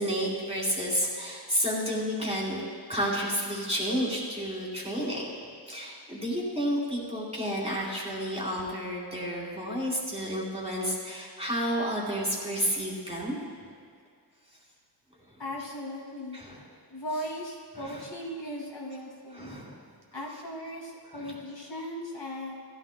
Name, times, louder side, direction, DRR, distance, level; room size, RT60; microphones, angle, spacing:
voice 1, 0.0-2.6 2.9-5.2 5.7-13.4 16.3-16.6 17.7-18.0 19.3-19.8 21.1-21.4, equal, 15° right, -4 dB, 3.4 m, -31 dB
voice 2, 15.4-16.4 16.9-19.6 20.1-22.5, equal, 85° left, -4 dB, 2.5 m, -37 dB
16.0 x 13.5 x 2.3 m, 2.1 s
wide cardioid pair, 50°, 42 cm